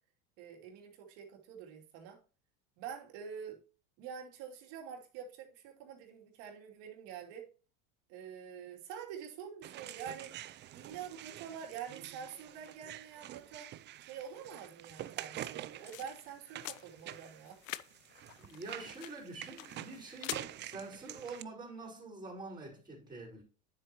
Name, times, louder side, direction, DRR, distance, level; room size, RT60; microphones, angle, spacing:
voice 1, 0.4-2.2 2.8-3.6 4.0-7.5 8.1-10.3 10.7-13.7 14.0-17.6, right 8 dB, 65° right, 3.0 m, -46 dB
sound 1, 9.6-21.4, right 13 dB, 30° right, 0.4 m, -47 dB
sound 2, 15.4-20.4, left 15 dB, 85° left, 0.7 m, -47 dB
voice 2, 18.4-23.4, right 3 dB, 10° right, 4.6 m, -46 dB
9.7 x 7.7 x 3.0 m
supercardioid pair, 120°, 38 cm